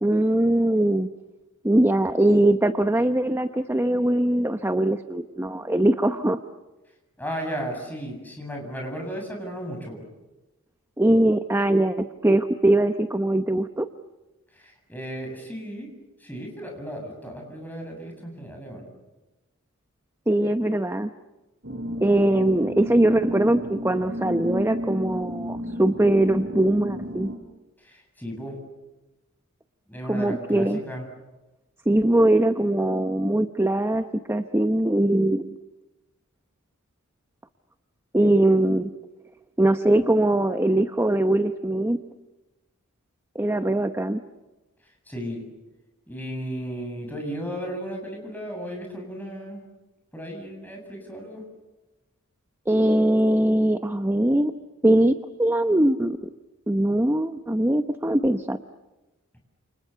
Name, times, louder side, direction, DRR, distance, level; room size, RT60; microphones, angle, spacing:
voice 1, 0.0-1.1 1.6-6.4 11.0-13.9 20.3-21.1 22.0-27.3 30.1-30.8 31.9-35.5 38.1-38.9 39.6-42.0 43.3-44.2 52.7-54.5 54.8-56.2 56.7-58.6, right 1 dB, 10° right, 8 dB, 0.9 m, -21 dB
voice 2, 7.2-10.1 14.5-15.9 16.2-18.8 27.8-28.6 29.9-31.0 45.1-45.5 46.1-49.7 50.1-51.4, equal, 10° left, 2 dB, 7.8 m, -35 dB
sound 1, 21.6-27.4, equal, 55° right, 5.6 m, -33 dB
30.0 x 29.0 x 6.9 m, 1.1 s
head